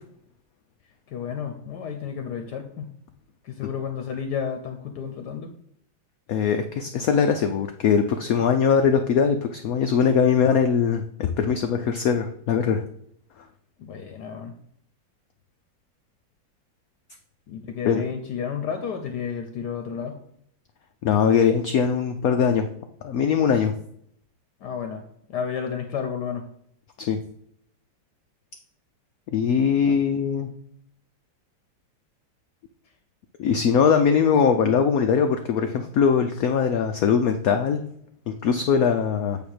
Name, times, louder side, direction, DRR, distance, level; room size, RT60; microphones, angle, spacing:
voice 1, 1.1-2.9 3.4-5.5 13.8-14.5 17.5-20.2 24.6-25.0 25.3-26.5 29.8-30.0, left 7 dB, 70° left, 6 dB, 1.1 m, -31 dB
voice 2, 6.3-12.8 17.8-18.0 21.0-22.7 23.0-23.7 27.0-27.2 29.3-30.5 33.4-37.8 38.3-39.4, left 6 dB, 90° left, 7 dB, 0.7 m, -21 dB
8.5 x 2.9 x 6.3 m, 0.70 s
omnidirectional pair, 2.1 m